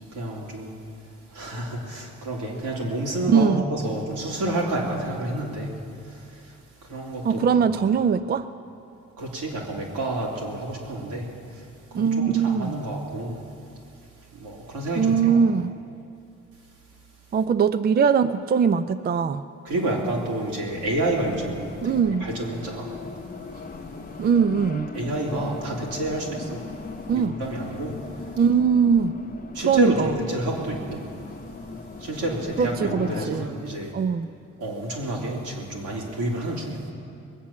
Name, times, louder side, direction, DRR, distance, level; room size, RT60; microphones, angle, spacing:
voice 1, 0.1-0.7 1.3-5.7 6.1-6.5 6.8-7.4 9.2-11.3 11.5-11.6 11.9-13.4 14.3-15.4 19.6-23.0 24.9-26.6 27.1-28.1 29.5-31.0 32.0-33.9 34.6-36.9, right 1 dB, 85° right, -3 dB, 3.4 m, -29 dB
voice 2, 3.3-3.6 7.2-8.5 11.9-12.7 15.0-15.7 17.3-19.4 21.8-22.3 24.2-24.9 27.1-27.4 28.4-29.1 29.6-30.1 32.6-33.5 33.9-34.3, right 6 dB, 30° right, 12 dB, 0.4 m, -21 dB
Race car auto racing, 20.7-33.3, left 3 dB, 30° left, 0.9 m, -38 dB
21.0 x 8.5 x 7.2 m, 2.7 s
cardioid pair, 90°, 30 cm